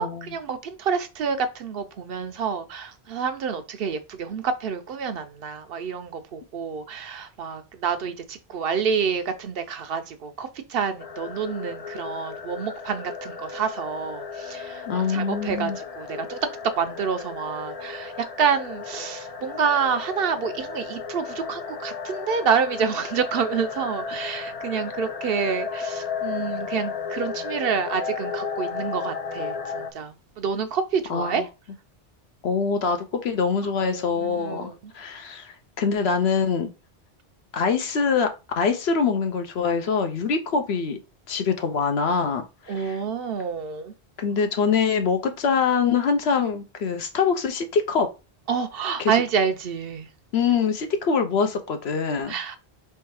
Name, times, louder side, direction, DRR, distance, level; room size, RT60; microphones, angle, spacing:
voice 1, 0.0-16.4 16.6-31.5 33.8-34.9 42.7-43.9 48.5-50.1 52.3-52.6, right 6 dB, 65° right, 0.8 m, -28 dB
sound 1, 11.0-29.9, left 5 dB, 50° left, 0.4 m, -34 dB
voice 2, 14.9-15.8 31.1-31.4 32.4-36.7 37.5-38.3 38.6-41.0 41.3-42.5 42.8-43.0 44.2-48.1 49.0-49.1 50.3-52.3, left 5 dB, 75° left, 1.0 m, -24 dB
3.5 x 3.2 x 4.6 m
omnidirectional pair, 1.1 m